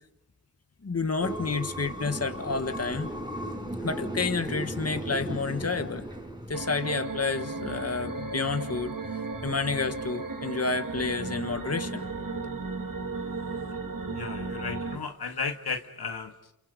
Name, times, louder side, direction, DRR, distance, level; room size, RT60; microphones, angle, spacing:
voice 1, 0.8-3.1 3.8-6.0 6.5-8.9 9.4-12.1, left 4 dB, 40° left, 8 dB, 1.5 m, -30 dB
sound 1, 1.2-6.5, right 1 dB, 10° right, 5.3 m, -36 dB
sound 2, 6.5-15.0, right 3 dB, 60° right, 2.1 m, -35 dB
voice 2, 14.1-16.5, left 5 dB, 90° left, 5 dB, 1.9 m, -34 dB
28.5 x 28.5 x 5.2 m, 0.85 s
cardioid pair, 45°, 37 cm